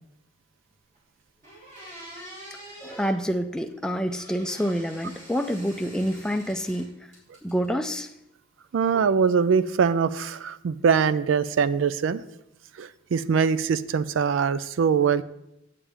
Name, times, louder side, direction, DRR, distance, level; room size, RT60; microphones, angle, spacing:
sound 1, 0.9-1.0 1.4-3.2 4.1-6.9 7.1-7.9, equal, 40° right, 3.4 m, -45 dB
voice 1, 2.8-6.9 7.4-8.1, equal, 5° left, 6 dB, 0.4 m, -27 dB
voice 2, 8.7-12.2 12.8-15.2, right 6 dB, 80° right, 16 dB, 0.4 m, -23 dB
8.8 x 8.4 x 3.4 m, 0.85 s
head